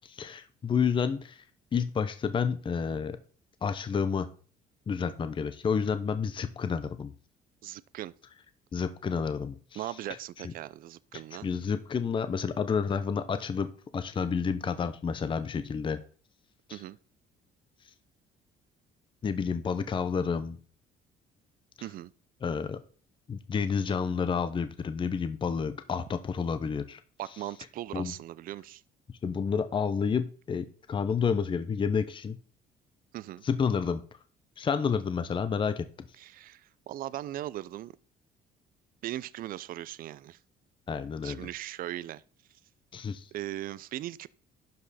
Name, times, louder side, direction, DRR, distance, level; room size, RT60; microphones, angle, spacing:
voice 1, 0.0-1.4 1.7-3.2 3.6-4.3 4.9-7.1 8.7-9.8 10.4-10.5 11.4-16.0 16.7-16.8 19.2-20.6 22.4-22.8 23.3-27.0 27.9-28.1 29.2-32.4 33.4-34.0 34.6-36.1 40.9-41.5 42.9-43.3, left 6 dB, 30° left, 0.7 m, -30 dB
voice 2, 7.6-8.1 9.8-11.5 16.7-17.0 21.8-22.1 27.2-28.8 33.1-33.4 36.2-37.9 39.0-40.4 41.2-42.2 43.3-44.3, right 13 dB, 55° right, 0.4 m, -39 dB
12.0 x 5.2 x 4.2 m
cardioid pair, 110°, 17 cm